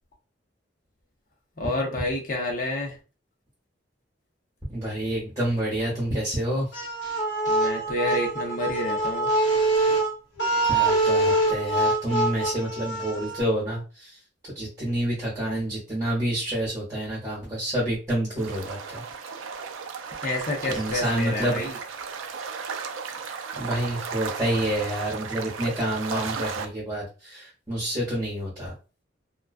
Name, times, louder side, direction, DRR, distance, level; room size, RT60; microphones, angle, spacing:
voice 1, 1.6-3.0 7.5-9.3 20.2-21.8, left 1 dB, 45° left, 1 dB, 0.7 m, -29 dB
voice 2, 4.7-6.7 10.6-14.2 14.5-19.0 20.8-21.6 23.6-28.7, right 1 dB, 15° right, -6 dB, 1.0 m, -28 dB
sound 1, 6.7-13.4, right 2 dB, 70° left, 0.9 m, -24 dB
sound 2, 18.4-26.7, right 5 dB, 90° right, 0.4 m, -35 dB
2.3 x 2.2 x 2.4 m, 0.33 s
head